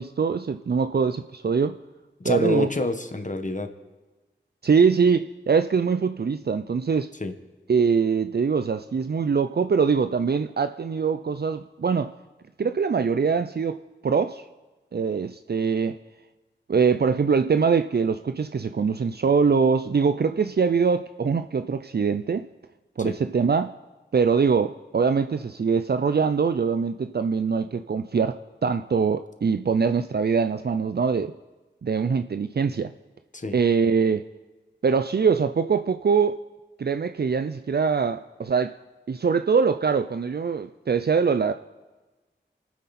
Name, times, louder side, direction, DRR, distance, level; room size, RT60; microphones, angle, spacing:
voice 1, 0.0-1.8 2.2-2.7 4.6-7.1 7.7-12.1 12.6-14.4 14.9-16.0 16.7-22.5 23.0-23.7 24.1-31.3 31.8-32.9 33.5-34.2 34.8-36.4 36.8-38.8 39.1-41.5, right 5 dB, 55° right, 0.5 m, -23 dB
voice 2, 2.2-3.7 7.2-7.3 23.0-23.2 33.3-33.6, left 2 dB, 40° left, 1.4 m, -28 dB
27.0 x 9.5 x 4.2 m
wide cardioid pair, 50°, 19 cm